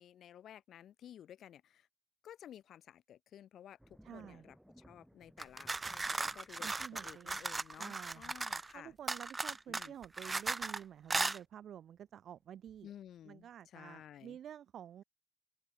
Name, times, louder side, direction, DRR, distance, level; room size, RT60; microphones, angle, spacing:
voice 1, 0.0-1.9 2.2-8.9 9.7-9.9 12.8-14.4, left 10 dB, 70° left, 0.9 m, -54 dB
sound 1, 3.8-13.4 13.8-14.4, equal, 5° right, 3.7 m, -65 dB
voice 2, 4.0-4.5 6.6-7.4 7.8-8.3 8.7-12.9 13.3-15.0, right 10 dB, 65° right, 0.8 m, -50 dB
sound 2, 5.4-8.7 9.1-10.8 11.1-11.4, right 3 dB, 25° right, 0.6 m, -37 dB
open air
cardioid pair, 90°, 0 cm